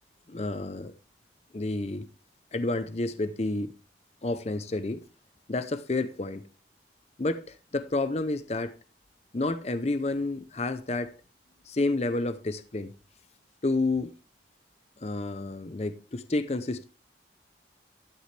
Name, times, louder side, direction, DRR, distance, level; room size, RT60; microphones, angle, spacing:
voice 1, 0.3-0.9 1.5-2.0 2.5-3.7 4.2-5.0 5.5-6.4 7.2-8.7 9.3-11.1 11.7-12.9 13.6-14.1 15.0-16.8, left 2 dB, 35° left, 0.6 m, -30 dB
12.5 x 7.8 x 3.3 m
head